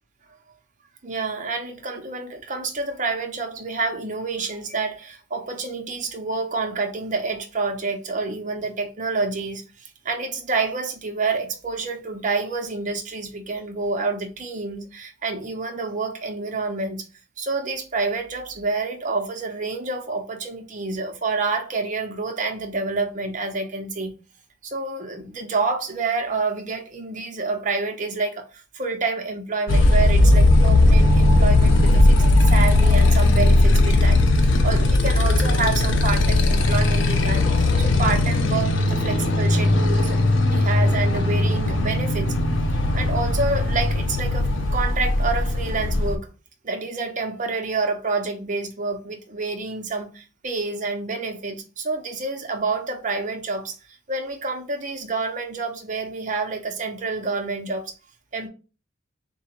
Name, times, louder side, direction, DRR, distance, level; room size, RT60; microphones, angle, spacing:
voice 1, 1.0-17.1 17.4-24.1 24.6-32.1 32.4-34.2 34.6-42.3 42.7-46.3 46.6-53.8 54.1-57.9 58.3-58.5, right 3 dB, 40° right, 0.7 m, -28 dB
Motorcycle, 29.7-46.1, left 2 dB, 65° left, 0.6 m, -18 dB
3.7 x 2.3 x 4.2 m
head